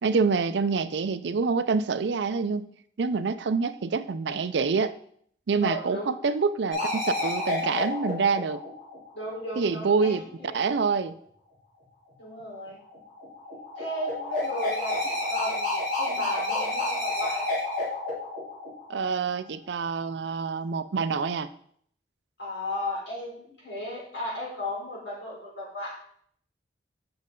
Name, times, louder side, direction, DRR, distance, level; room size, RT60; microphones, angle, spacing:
voice 1, 0.0-2.7 3.0-4.9 5.5-8.6 9.6-10.2 10.5-11.1 18.9-21.5, right 4 dB, 75° right, 13 dB, 0.4 m, -26 dB
voice 2, 5.6-6.1 9.1-10.6 12.2-12.8 13.8-17.5 22.4-26.0, left 1 dB, 75° left, -4 dB, 3.6 m, -35 dB
sound 1, 6.7-9.3 12.9-19.3, left 2 dB, 50° left, 3.5 m, -30 dB
7.8 x 6.2 x 3.8 m, 0.64 s
head